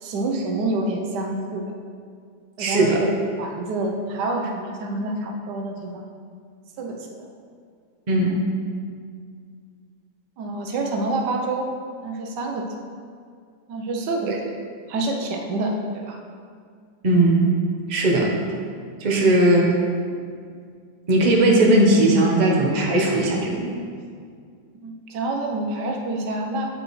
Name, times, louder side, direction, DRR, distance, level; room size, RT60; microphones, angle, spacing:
voice 1, 0.0-1.6 2.6-3.1 3.4-6.0 6.8-7.3 10.4-11.7 12.0-12.6 13.7-14.4 14.9-15.8 16.0-16.2 18.2-18.4 24.8-26.7, right 2 dB, 90° right, 2 dB, 1.4 m, -27 dB
voice 2, 2.6-3.0 8.1-8.3 14.3-14.4 17.0-17.5 17.9-18.3 19.0-19.8 21.1-23.7, right 1 dB, 35° right, -2 dB, 0.8 m, -18 dB
8.3 x 5.4 x 3.1 m, 2.1 s
omnidirectional pair, 1.8 m